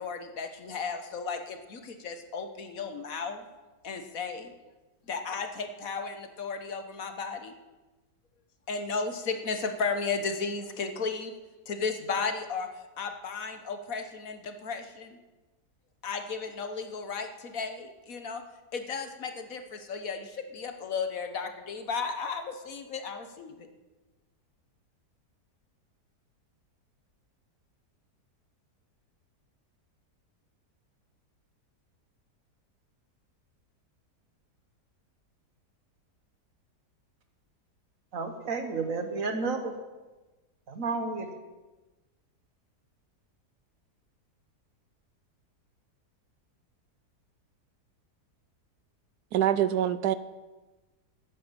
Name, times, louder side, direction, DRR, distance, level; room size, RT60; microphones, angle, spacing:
voice 1, 0.0-3.5 3.8-4.5 5.1-7.5 8.7-11.3 11.7-12.7 13.0-15.2 16.0-18.4 18.7-23.7, left 5 dB, 60° left, 7 dB, 1.4 m, -34 dB
voice 2, 38.1-39.7 40.7-41.3, right 4 dB, 55° right, 6 dB, 1.7 m, -31 dB
voice 3, 49.3-50.2, right 11 dB, 75° right, 14 dB, 1.1 m, -25 dB
11.5 x 9.6 x 7.4 m, 1.2 s
omnidirectional pair, 1.8 m